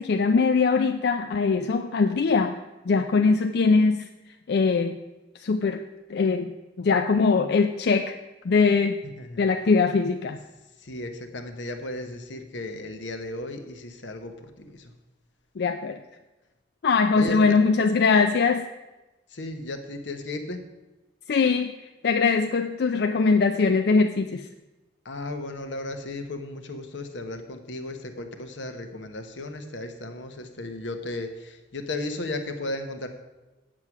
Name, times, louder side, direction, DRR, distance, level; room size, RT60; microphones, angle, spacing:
voice 1, 0.0-2.6 2.9-4.1 4.5-4.9 5.4-5.8 6.1-6.5 6.8-8.2 8.4-9.0 9.4-10.4 15.6-16.0 16.8-18.7 21.3-21.7 22.0-24.5, left 4 dB, 65° left, 7 dB, 0.4 m, -21 dB
voice 2, 9.0-9.7 10.3-10.4 10.8-14.9 17.1-17.6 19.3-20.6 25.0-33.1, left 2 dB, 90° left, 6 dB, 1.1 m, -35 dB
8.1 x 7.5 x 6.0 m, 1.1 s
head